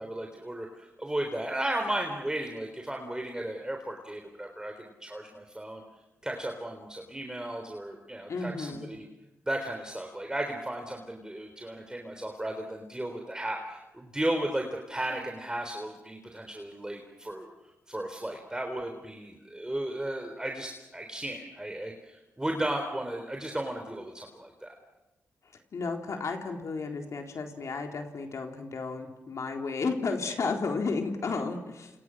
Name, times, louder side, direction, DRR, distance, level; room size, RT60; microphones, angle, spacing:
voice 1, 0.0-5.8 6.2-9.1 9.5-17.5 17.9-24.7, right 1 dB, 15° right, 3 dB, 3.6 m, -35 dB
voice 2, 8.3-8.9 25.7-31.9, left 4 dB, 65° left, 3 dB, 3.9 m, -33 dB
28.5 x 28.0 x 6.4 m, 1.0 s
cardioid pair, 65°, 6 cm